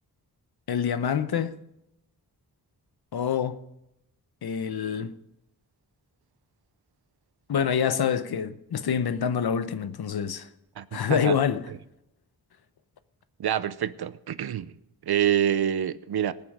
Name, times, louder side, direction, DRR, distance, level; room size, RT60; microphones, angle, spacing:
voice 1, 0.7-1.5 3.1-3.6 4.4-5.1 7.5-10.5 10.9-11.6, left 7 dB, 75° left, 0.8 m, -26 dB
voice 2, 10.8-11.4 13.4-14.7 15.1-16.3, right 10 dB, 75° right, 0.7 m, -26 dB
19.0 x 6.9 x 5.4 m
wide cardioid pair, 95°, 38 cm